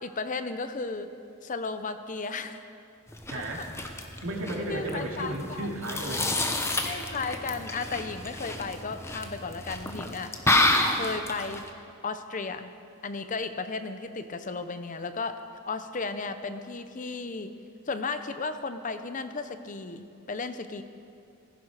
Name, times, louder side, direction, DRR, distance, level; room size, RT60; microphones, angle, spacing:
voice 1, 0.0-1.1 1.4-2.6 4.7-5.7 6.8-10.3 10.9-11.7 12.0-12.7 13.0-15.4 15.7-17.5 17.9-20.8, left 4 dB, 40° left, 10 dB, 0.7 m, -34 dB
sound 1, 3.1-11.7, left 2 dB, 15° left, 1.0 m, -29 dB
voice 2, 3.3-3.7 4.2-6.3, right 1 dB, 80° right, 0 dB, 2.4 m, -33 dB
15.5 x 15.5 x 4.9 m, 2.5 s
head